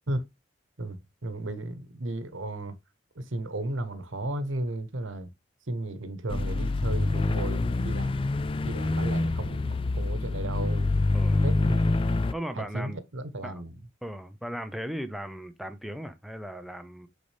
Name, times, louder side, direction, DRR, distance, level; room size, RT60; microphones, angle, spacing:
voice 1, 0.8-2.8 3.1-5.3 5.7-8.2 8.6-11.1 11.4-12.0 12.5-13.8, right 2 dB, 90° right, 1.1 m, -34 dB
sound 1, 6.3-12.3, left 2 dB, 25° left, 0.3 m, -26 dB
voice 2, 11.1-11.5 12.3-13.0 13.4-13.6 14.0-17.1, equal, ahead, 0.7 m, -37 dB
8.3 x 4.1 x 3.4 m
head